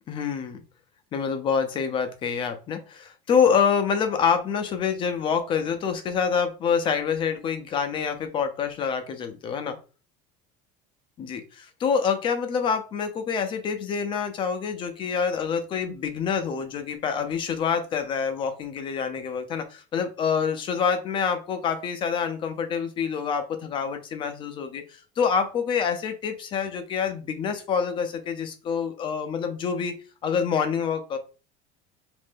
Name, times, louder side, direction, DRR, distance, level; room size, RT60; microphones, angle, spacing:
voice 1, 0.1-0.6 1.1-9.8 11.2-29.9 30.2-31.2, left 6 dB, 30° left, 8 dB, 0.5 m, -26 dB
3.2 x 2.5 x 3.5 m, 0.34 s
cardioid pair, 160°, 18 cm